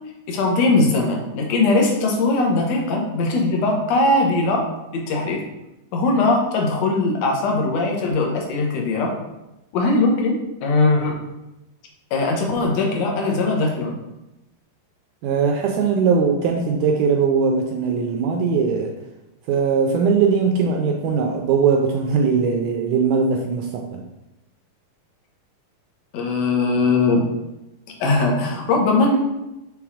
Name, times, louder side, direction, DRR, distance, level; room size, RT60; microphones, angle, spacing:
voice 1, 0.3-4.6 4.9-5.4 5.9-9.1 9.7-11.2 12.1-14.0 26.1-27.3 28.0-29.2, left 3 dB, 65° left, 0 dB, 2.0 m, -20 dB
voice 2, 15.2-19.0 19.5-24.0, right 5 dB, 80° right, 3 dB, 1.8 m, -20 dB
5.9 x 3.8 x 4.8 m, 0.96 s
omnidirectional pair, 3.9 m